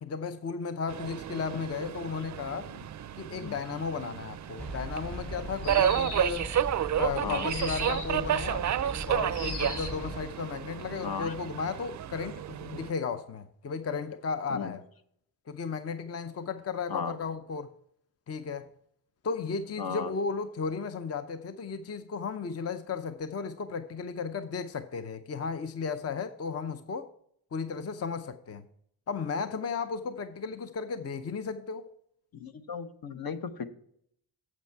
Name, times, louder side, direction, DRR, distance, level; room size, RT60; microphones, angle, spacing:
voice 1, 0.0-2.7 3.2-6.5 7.0-8.7 9.1-14.8 15.5-17.7 18.3-18.7 19.2-27.1 27.5-28.7 29.1-31.9, left 5 dB, 40° left, 0.6 m, -34 dB
Subway metro underground, 0.9-12.9, right 10 dB, 45° right, 0.4 m, -31 dB
sound 1, 4.6-10.2, right 1 dB, ahead, 0.6 m, -40 dB
sound 2, 5.6-6.4 7.5-8.2 9.3-10.1, left 4 dB, 80° left, 2.2 m, -39 dB
voice 2, 11.0-11.3 14.5-14.8 16.9-17.2 19.8-20.1 32.3-33.7, left 6 dB, 60° left, 0.9 m, -35 dB
8.2 x 7.3 x 4.5 m
cardioid pair, 95°, 40 cm